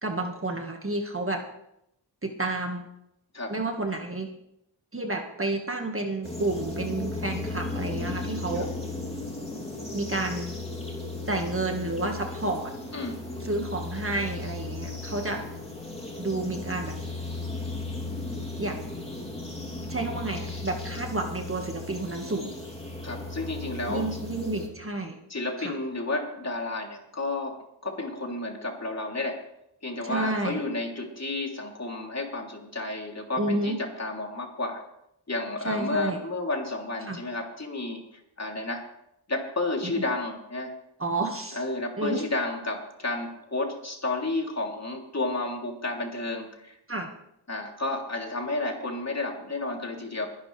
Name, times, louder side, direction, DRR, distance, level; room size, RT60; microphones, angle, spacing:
voice 1, 0.0-1.4 2.2-2.8 3.5-4.3 4.9-8.7 9.9-10.6 11.3-12.7 13.4-15.4 16.2-17.0 18.6-18.8 19.9-22.5 23.9-25.2 25.6-25.7 30.0-30.6 33.4-33.8 35.6-36.2 37.0-37.2 39.8-40.0 41.0-41.6 42.0-42.2 46.9-47.1, right 2 dB, 30° right, 3 dB, 1.8 m, -30 dB
sound 1, 6.2-24.7, left 2 dB, 15° left, 3.0 m, -36 dB
voice 2, 23.0-24.1 25.3-29.4 29.8-34.8 35.3-38.0 38.4-38.9 39.3-40.8 41.5-46.8 47.5-50.3, left 2 dB, 35° left, 1 dB, 3.3 m, -31 dB
22.0 x 11.0 x 3.4 m, 0.80 s
cardioid pair, 60°, 45 cm